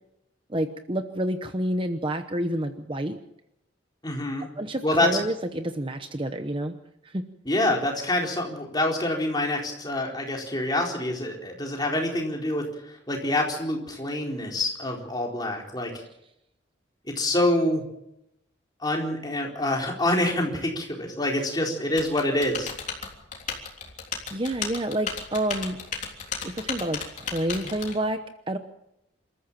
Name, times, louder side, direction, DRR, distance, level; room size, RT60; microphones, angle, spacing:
voice 1, 0.5-3.2 4.6-6.7 7.0-7.2 24.3-25.8 26.4-28.6, right 1 dB, 25° right, 8 dB, 0.9 m, -29 dB
voice 2, 4.0-4.5 4.8-5.1 7.5-15.9 17.2-17.8 18.8-22.7, left 1 dB, 20° left, 0 dB, 4.3 m, -26 dB
Typing, 22.0-28.0, left 5 dB, 40° left, 3.5 m, -34 dB
27.0 x 14.0 x 7.6 m, 0.82 s
head